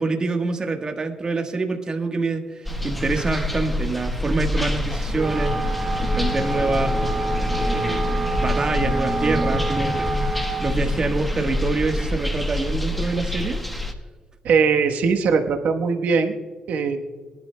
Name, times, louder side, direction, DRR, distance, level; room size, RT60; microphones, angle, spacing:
voice 1, 0.0-5.6 6.0-7.0 7.6-8.1 8.4-10.1 10.6-13.6, right 3 dB, 30° right, 4 dB, 1.3 m, -26 dB
sound 1, 2.6-13.9, left 1 dB, 5° left, 1.1 m, -26 dB
Wind instrument woodwind instrument, 5.1-10.8, right 2 dB, 15° right, 3.5 m, -28 dB
voice 2, 14.4-16.3 16.7-17.0, right 5 dB, 80° right, 5 dB, 1.1 m, -20 dB
22.5 x 11.5 x 2.2 m, 1.4 s
cardioid pair, 120°, 3 cm